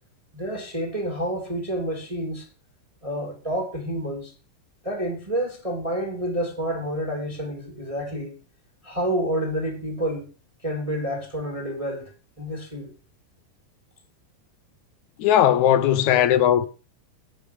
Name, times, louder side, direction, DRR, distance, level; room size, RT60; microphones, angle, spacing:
voice 1, 0.3-2.5 3.0-4.3 4.8-8.4 8.8-10.3 10.6-12.1 12.4-12.9, equal, 10° right, 2.8 m, -29 dB
voice 2, 15.2-16.7, left 10 dB, 70° left, 2.2 m, -18 dB
10.5 x 8.6 x 7.3 m
omnidirectional pair, 3.6 m